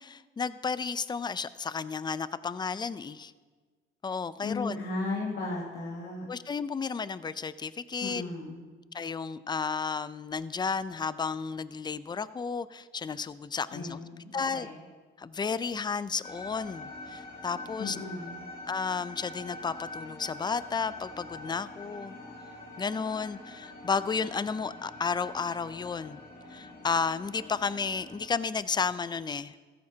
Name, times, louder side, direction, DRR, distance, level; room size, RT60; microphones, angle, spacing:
voice 1, 0.0-3.3 4.0-4.8 6.3-8.2 8.9-14.0 14.3-14.7 15.2-18.0 18.7-22.2 22.8-26.2 26.5-29.5, left 5 dB, 20° left, 16 dB, 0.4 m, -32 dB
voice 2, 4.4-6.3 8.0-8.6 13.7-14.7 17.8-18.4, left 3 dB, 65° left, -2 dB, 2.0 m, -35 dB
sound 1, 16.2-28.3, left 2 dB, 45° left, 2.4 m, -45 dB
14.0 x 13.5 x 2.8 m, 1.4 s
cardioid pair, 90°, 20 cm